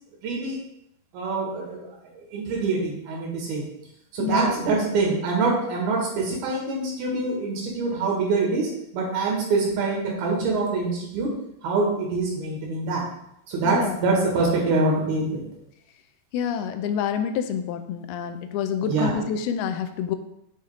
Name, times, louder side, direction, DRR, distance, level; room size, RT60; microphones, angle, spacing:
voice 1, 0.2-0.6 1.1-1.9 2.2-3.6 4.1-11.3 11.6-13.0 13.5-15.4 18.8-19.2, right 3 dB, 75° right, -2 dB, 3.8 m, -25 dB
voice 2, 4.2-5.0 13.6-14.0 16.3-20.2, left 7 dB, 80° left, 8 dB, 2.4 m, -28 dB
7.9 x 5.8 x 3.7 m, 0.79 s
omnidirectional pair, 4.6 m